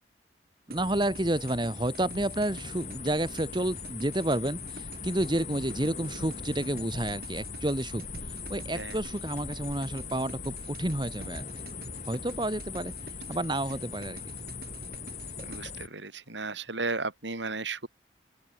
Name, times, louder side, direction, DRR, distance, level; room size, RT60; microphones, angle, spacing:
sound 1, 0.7-15.9, left 4 dB, 40° left, 6.3 m, -40 dB
voice 1, 0.7-8.0 8.5-11.4 12.1-12.9 13.3-14.3, right 1 dB, 25° right, 1.4 m, -30 dB
sound 2, 0.7-15.6, right 5 dB, 55° right, 5.1 m, -49 dB
voice 2, 15.4-17.9, right 3 dB, 90° right, 5.6 m, -34 dB
open air
head